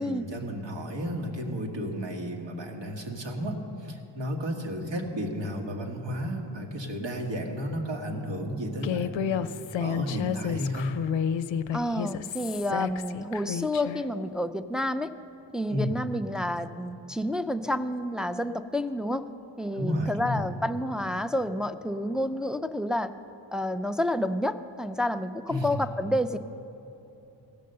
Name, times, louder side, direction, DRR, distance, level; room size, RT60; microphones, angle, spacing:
voice 1, 0.0-9.3 9.8-10.9 15.7-15.9 19.7-20.5 25.5-25.7, equal, 70° right, 1 dB, 1.6 m, -32 dB
Human voice, 8.8-14.0, left 8 dB, 75° left, 0.5 m, -31 dB
voice 2, 11.7-15.1 15.5-19.3 19.6-23.1 23.5-26.4, left 1 dB, ahead, 8 dB, 0.3 m, -29 dB
15.5 x 6.6 x 6.6 m, 2.9 s
cardioid pair, 65°, 45 cm